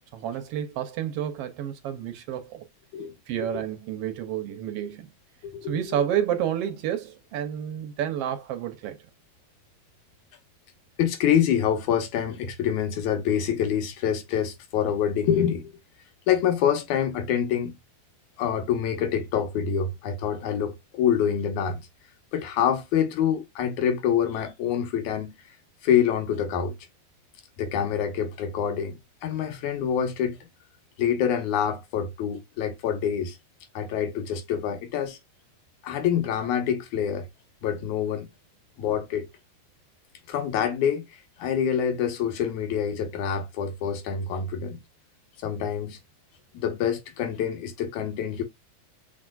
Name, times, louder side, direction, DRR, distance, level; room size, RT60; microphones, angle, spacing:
voice 1, 0.1-2.7 3.3-5.1 5.6-9.0, right 10 dB, 70° right, 1.5 m, -30 dB
voice 2, 5.4-6.0 11.0-15.7 16.3-17.7 18.4-21.9 22.3-25.4 25.8-26.8 27.6-30.4 31.0-33.4 33.7-35.2 35.8-37.3 37.6-38.3 38.8-39.3 40.3-44.8 45.4-46.0 46.6-48.4, left 8 dB, 90° left, 2.6 m, -26 dB
6.1 x 3.7 x 2.3 m
omnidirectional pair, 3.3 m